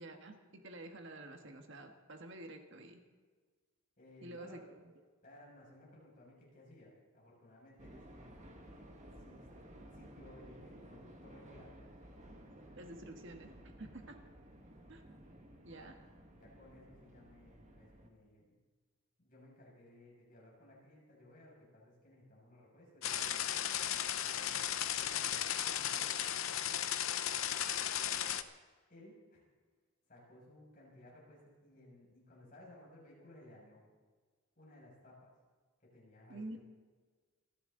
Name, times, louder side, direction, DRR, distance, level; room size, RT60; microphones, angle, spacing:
voice 1, 0.0-3.0 4.2-4.8 12.8-13.5 13.8-14.2 14.9-15.0 15.6-15.9 36.3-36.6, right 1 dB, 55° right, 4 dB, 1.6 m, -49 dB
voice 2, 4.0-4.6 5.2-8.5 9.2-9.5 9.9-11.8 13.8-14.1 15.7-15.9 16.3-18.6 19.2-23.7 24.2-26.4 28.9-29.4 30.1-33.9 34.6-35.3 35.8-36.6, left 1 dB, 40° left, -4 dB, 6.5 m, -59 dB
sound 1, 7.8-18.1, right 1 dB, 30° right, 1.7 m, -55 dB
sound 2, 23.0-28.4, left 10 dB, 70° left, 0.8 m, -35 dB
28.5 x 11.5 x 3.9 m, 1.5 s
head